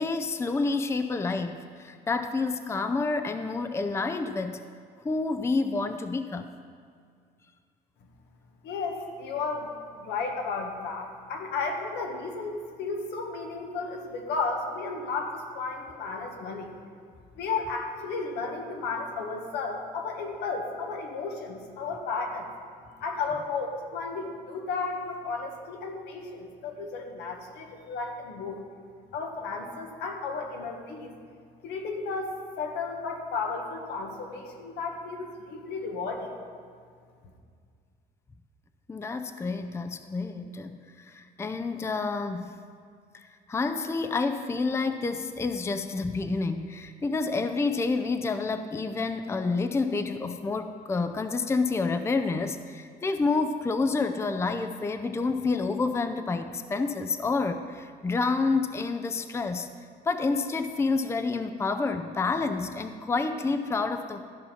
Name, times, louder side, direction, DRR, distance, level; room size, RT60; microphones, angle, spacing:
voice 1, 0.0-4.6 5.0-6.6 38.9-42.5 43.1-59.7 60.1-64.3, left 3 dB, 15° left, 8 dB, 0.5 m, -29 dB
voice 2, 8.6-16.7 17.4-22.5 23.0-28.6 29.1-31.1 31.6-36.3, left 4 dB, 85° left, 3 dB, 1.4 m, -33 dB
14.0 x 5.5 x 5.8 m, 2.1 s
cardioid pair, 110°, 17 cm